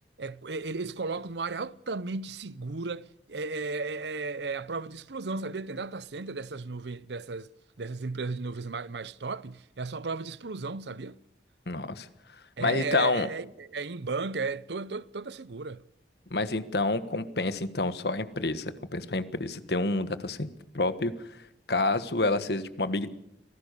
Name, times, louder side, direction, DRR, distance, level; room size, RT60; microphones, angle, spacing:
voice 1, 0.2-7.5 7.8-11.2 12.6-15.8, right 3 dB, 75° right, 0.8 m, -35 dB
voice 2, 11.7-12.1 12.6-13.3 16.3-20.5 20.7-21.1 21.7-23.2, left 2 dB, 65° left, 1.5 m, -28 dB
26.0 x 18.5 x 6.8 m
head